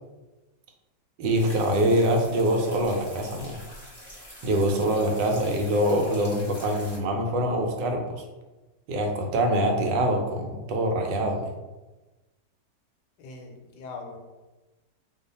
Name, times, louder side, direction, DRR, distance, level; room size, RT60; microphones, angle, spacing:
voice 1, 1.2-3.6 4.4-8.2 8.9-11.5, right 1 dB, 85° right, 3 dB, 1.3 m, -24 dB
sound 1, 1.3-7.0, equal, 20° left, 0.7 m, -45 dB
voice 2, 13.2-14.2, left 3 dB, 80° left, 2 dB, 1.2 m, -41 dB
2.8 x 2.4 x 3.9 m, 1.1 s
omnidirectional pair, 1.9 m